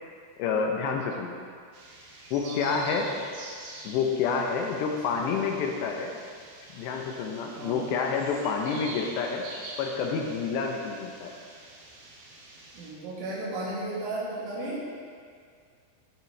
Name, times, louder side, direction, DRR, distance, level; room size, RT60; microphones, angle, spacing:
voice 1, 0.4-1.4 2.3-3.1 3.8-6.1 6.7-9.5 9.8-11.3, left 5 dB, 80° left, 2 dB, 2.7 m, -28 dB
sound 1, 1.7-12.9, right 1 dB, 65° right, 3.1 m, -45 dB
voice 2, 2.4-3.1 4.6-5.0 7.5-7.9 12.7-14.9, right 2 dB, 85° right, -8 dB, 4.8 m, -35 dB
17.5 x 6.1 x 3.2 m, 2.1 s
omnidirectional pair, 5.4 m